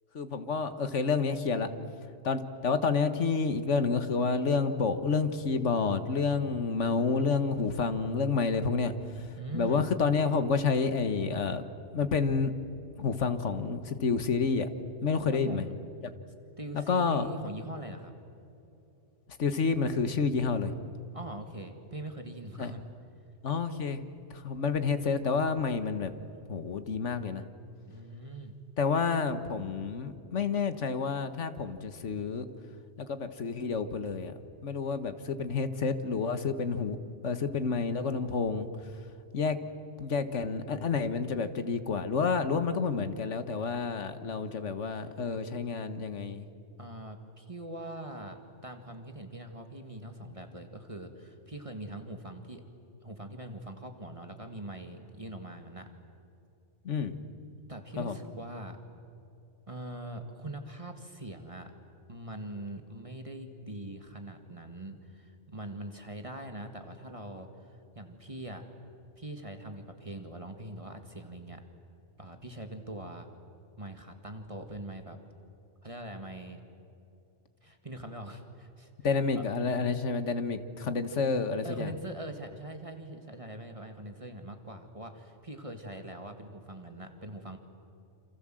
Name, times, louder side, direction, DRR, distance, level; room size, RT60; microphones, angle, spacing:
voice 1, 0.1-1.7 2.2-9.3 9.5-11.6 11.9-12.5 13.0-14.7 15.0-15.6 16.7-17.3 19.4-20.7 22.6-22.7 23.4-24.0 24.3-26.1 26.5-27.4 28.8-32.5 33.0-34.3 34.6-37.0 37.2-38.7 39.3-39.6 40.0-46.5 56.8-57.2 58.0-58.2 79.0-81.9, left 5 dB, 75° left, 10 dB, 1.7 m, -29 dB
voice 2, 9.4-9.9 15.3-15.8 16.6-18.1 21.1-22.8 27.9-28.5 46.8-52.6 53.0-55.9 57.7-58.8 59.7-61.7 62.1-68.6 69.2-71.6 72.2-73.3 73.8-75.2 75.8-76.6 77.6-78.9 79.3-79.5 81.6-87.6, right 1 dB, 25° right, 5 dB, 1.9 m, -42 dB
28.5 x 27.5 x 7.7 m, 2.7 s
omnidirectional pair, 1.2 m